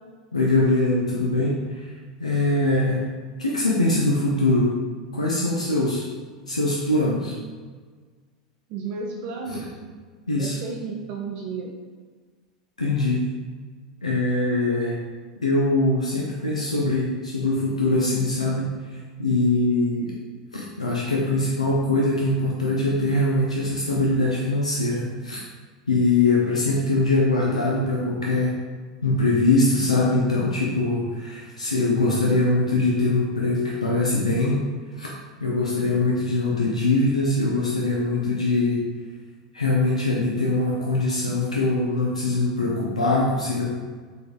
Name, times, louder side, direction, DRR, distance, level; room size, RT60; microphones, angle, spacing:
voice 1, 0.3-1.9 2.2-3.0 3.4-4.7 5.1-6.0 6.5-7.4 9.5-9.6 10.3-10.6 12.8-13.2 14.0-15.0 15.4-20.1 20.5-25.4 25.9-28.6 29.0-34.6 35.0-35.1 35.4-38.8 39.5-43.7, left 2 dB, 80° left, -3 dB, 0.4 m, -22 dB
voice 2, 8.7-9.6 10.4-11.7, right 4 dB, 45° right, 0 dB, 0.4 m, -32 dB
3.9 x 3.4 x 2.4 m, 1.5 s
figure-of-eight pair, 85°, 4 cm